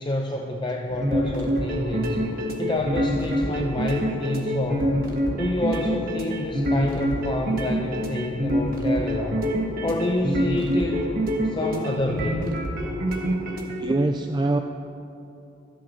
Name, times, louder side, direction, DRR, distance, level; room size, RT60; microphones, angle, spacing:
voice 1, 0.0-5.0 5.3-9.5 9.8-12.5, left 1 dB, 25° left, 1 dB, 0.6 m, -28 dB
sound 1, 0.9-13.8, equal, 45° right, 1.5 m, -26 dB
voice 2, 13.8-14.6, right 2 dB, 20° right, 5 dB, 0.4 m, -23 dB
25.0 x 8.3 x 3.1 m, 2.9 s
head